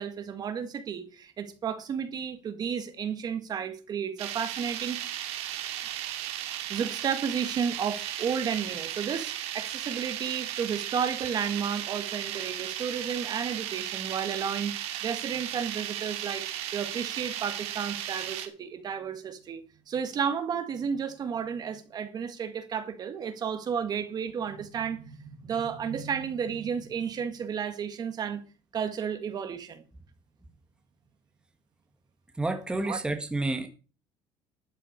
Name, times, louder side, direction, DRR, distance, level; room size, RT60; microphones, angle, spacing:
voice 1, 0.0-5.0 6.7-14.7 15.0-16.5 16.7-19.6 19.9-28.4 28.7-29.8 32.8-33.0, right 7 dB, 40° right, 1.8 m, -32 dB
sound 1, 4.2-18.5, right 12 dB, 70° right, 2.3 m, -35 dB
voice 2, 32.4-33.7, right 2 dB, 10° right, 1.5 m, -29 dB
12.0 x 7.7 x 6.5 m
cardioid pair, 130°, 11 cm